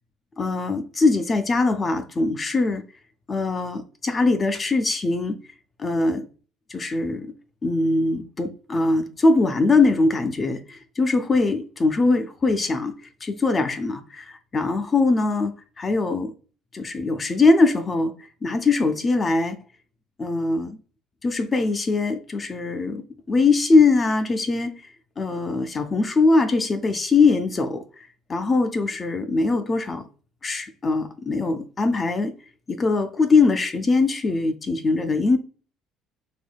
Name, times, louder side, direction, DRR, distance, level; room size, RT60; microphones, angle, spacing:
voice 1, 0.4-2.8 3.3-5.4 5.8-6.3 6.7-7.3 7.6-12.9 13.2-16.3 16.7-18.1 18.4-19.6 20.2-20.8 21.2-24.8 25.2-27.8 28.3-30.0 30.4-32.3 32.7-35.4, left 3 dB, 20° left, 0.3 m, -21 dB
3.5 x 3.3 x 2.2 m
cardioid pair, 155°, 0 cm